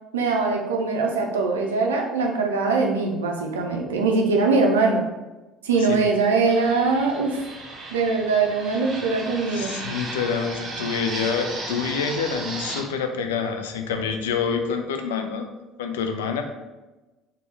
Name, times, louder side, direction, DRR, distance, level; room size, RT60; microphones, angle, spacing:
voice 1, 0.1-5.1 5.6-7.4 7.9-9.7, right 4 dB, 80° right, 2 dB, 0.4 m, -22 dB
Fixed-wing aircraft airplane, 6.4-12.8, right 2 dB, 40° right, 0.7 m, -35 dB
voice 2, 9.5-15.5 15.8-16.4, left 6 dB, 80° left, 5 dB, 0.3 m, -27 dB
2.8 x 2.2 x 3.2 m, 1.1 s
hypercardioid pair, 60°, 0 cm